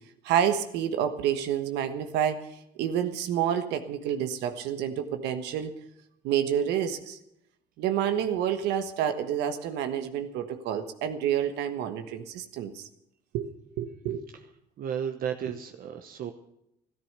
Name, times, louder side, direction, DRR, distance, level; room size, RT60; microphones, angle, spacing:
voice 1, 0.2-5.7 6.2-7.2 7.8-12.9 13.3-13.5 13.8-14.2 15.4-15.5, right 9 dB, 90° right, 8 dB, 1.4 m, -29 dB
voice 2, 14.8-16.3, right 8 dB, 60° right, 7 dB, 1.0 m, -33 dB
14.0 x 13.0 x 6.7 m, 0.80 s
cardioid pair, 110°, 17 cm